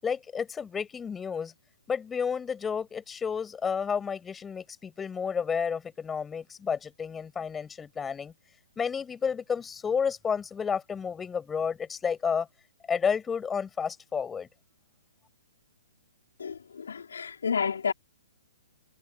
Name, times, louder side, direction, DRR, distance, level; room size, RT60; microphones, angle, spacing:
voice 1, 0.0-1.5 1.9-8.3 8.8-12.5 12.9-14.5, left 6 dB, 10° left, 6.6 m, -31 dB
voice 2, 16.4-17.9, left 6 dB, 65° left, 3.6 m, -30 dB
figure-of-eight pair, 120°, 0 cm